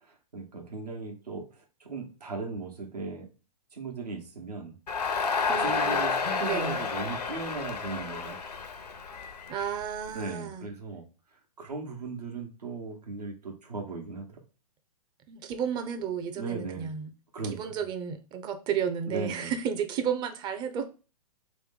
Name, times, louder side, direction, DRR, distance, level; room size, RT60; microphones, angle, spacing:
voice 1, 0.0-3.3 3.7-4.8 5.6-8.4 10.1-11.0 11.6-14.4 16.4-16.9 17.3-17.7 19.1-19.5, right 3 dB, 80° right, 1.1 m, -37 dB
Crowd, 4.9-10.1, left 5 dB, 85° left, 0.7 m, -30 dB
voice 2, 5.5-6.0 6.4-6.8 9.5-10.7 15.3-17.1 17.4-20.9, right 8 dB, 20° right, 0.5 m, -32 dB
3.1 x 3.0 x 3.7 m
hypercardioid pair, 120°, 20 cm